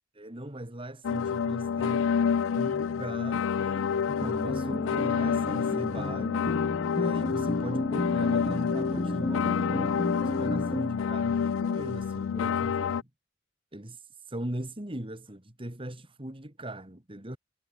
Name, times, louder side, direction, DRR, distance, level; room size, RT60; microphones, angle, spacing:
voice 1, 0.1-2.1 2.5-6.4 7.0-13.1 13.7-17.4, right 1 dB, 25° right, 2.2 m, -40 dB
sound 1, 1.0-13.0, left 7 dB, 75° left, 0.4 m, -28 dB
sound 2, 4.1-10.9, left 1 dB, 20° left, 1.2 m, -33 dB
head